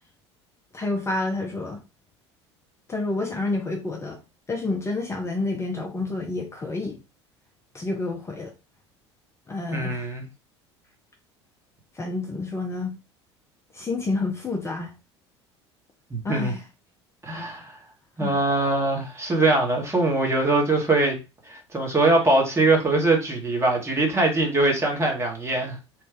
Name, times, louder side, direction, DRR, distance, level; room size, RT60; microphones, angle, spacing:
voice 1, 0.7-1.8 2.9-4.2 4.5-7.0 7.7-8.5 9.5-10.1 11.9-12.9 13.7-14.9 16.2-16.6 18.2-18.4, left 2 dB, 20° left, 0.8 m, -29 dB
voice 2, 9.7-10.2 16.1-16.5 17.2-17.8 18.2-21.2 21.5-25.8, right 2 dB, 15° right, 1.5 m, -22 dB
3.2 x 2.6 x 3.5 m
figure-of-eight pair, 65°, 15 cm